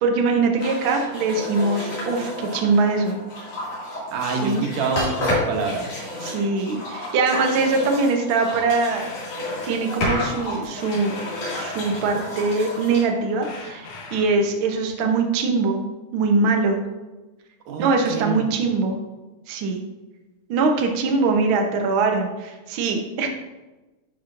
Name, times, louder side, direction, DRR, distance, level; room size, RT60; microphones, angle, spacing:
voice 1, 0.0-3.2 4.4-4.6 6.2-9.1 9.7-11.1 11.5-15.8 16.1-16.8 17.8-19.0 19.5-19.8 20.5-23.3, right 3 dB, 85° right, 2 dB, 1.1 m, -22 dB
sound 1, 0.6-14.1, left 1 dB, 50° left, 3.2 m, -31 dB
voice 2, 4.1-5.8 17.7-18.5, right 4 dB, 70° right, 2 dB, 2.2 m, -27 dB
sound 2, 8.9-9.8 10.8-12.4 13.4-14.5, left 4 dB, 80° left, 2.5 m, -40 dB
11.5 x 5.5 x 2.6 m, 1.1 s
omnidirectional pair, 3.6 m